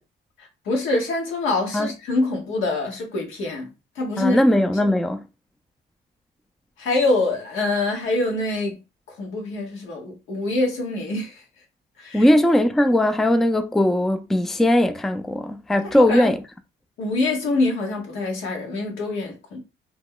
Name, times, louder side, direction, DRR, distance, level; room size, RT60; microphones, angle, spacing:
voice 1, 0.4-3.7 3.9-4.4 6.8-8.8 9.1-11.4 12.0-12.3 15.9-16.3 17.0-19.6, left 2 dB, 90° left, 1.3 m, -25 dB
voice 2, 4.2-5.3 12.1-16.4, left 1 dB, ahead, 0.3 m, -19 dB
2.9 x 2.2 x 3.7 m
cardioid pair, 90°, 20 cm